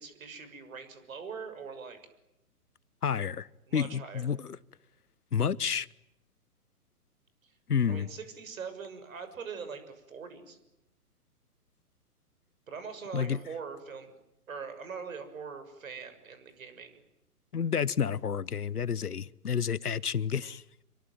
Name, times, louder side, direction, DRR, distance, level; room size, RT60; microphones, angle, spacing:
voice 1, 0.0-2.0 3.7-4.3 7.4-7.5 7.9-10.6 12.7-14.1 14.5-17.0, right 5 dB, 60° right, 10 dB, 6.7 m, -42 dB
voice 2, 3.0-4.6 5.3-5.9 7.7-8.1 13.1-13.4 17.5-20.6, left 7 dB, 75° left, 21 dB, 1.1 m, -30 dB
27.0 x 24.0 x 9.3 m, 0.88 s
figure-of-eight pair, 125°, 46 cm